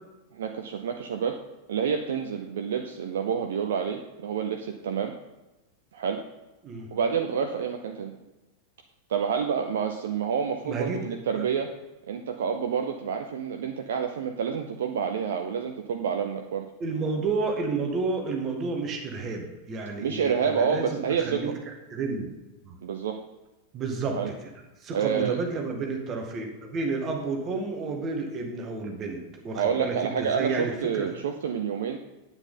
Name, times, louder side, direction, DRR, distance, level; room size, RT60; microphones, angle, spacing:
voice 1, 0.3-1.4 1.7-5.1 5.9-6.2 6.9-8.1 9.1-11.7 12.1-16.7 20.0-21.5 22.8-23.2 24.2-24.3 24.9-25.4 29.5-32.0, right 7 dB, 60° right, 5 dB, 0.7 m, -28 dB
voice 2, 10.6-11.5 16.8-21.5 21.9-22.3 22.6-22.8 23.7-24.3 24.8-31.1, right 4 dB, 30° right, 2 dB, 2.0 m, -31 dB
9.9 x 8.9 x 3.9 m, 1.1 s
figure-of-eight pair, 90°, 0 cm